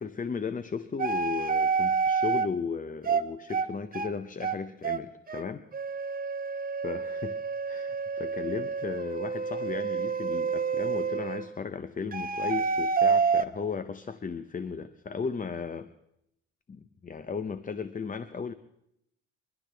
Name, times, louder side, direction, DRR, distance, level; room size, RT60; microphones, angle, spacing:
voice 1, 0.0-5.6 6.8-7.4 7.6-15.9 16.7-18.5, left 5 dB, 25° left, 12 dB, 0.6 m, -35 dB
sound 1, 1.0-2.5 3.1-3.2 3.5-3.7 3.9-4.1 4.4-4.6 4.8-5.0 5.3-5.5 5.7-11.5 12.1-13.5, right 5 dB, 30° right, 1.0 m, -28 dB
28.0 x 12.0 x 3.4 m, 0.80 s
cardioid pair, 90°, 30 cm